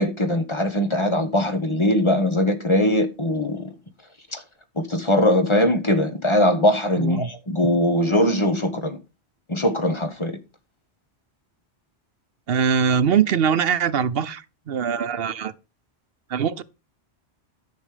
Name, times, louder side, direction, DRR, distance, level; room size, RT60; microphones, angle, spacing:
voice 1, 0.0-3.7 4.3-4.4 4.8-9.0 9.5-10.3, left 1 dB, 25° left, 1.3 m, -21 dB
voice 2, 7.0-7.3 12.5-15.5 16.3-16.6, right 7 dB, 65° right, 0.9 m, -22 dB
10.5 x 6.5 x 5.0 m
omnidirectional pair, 1.1 m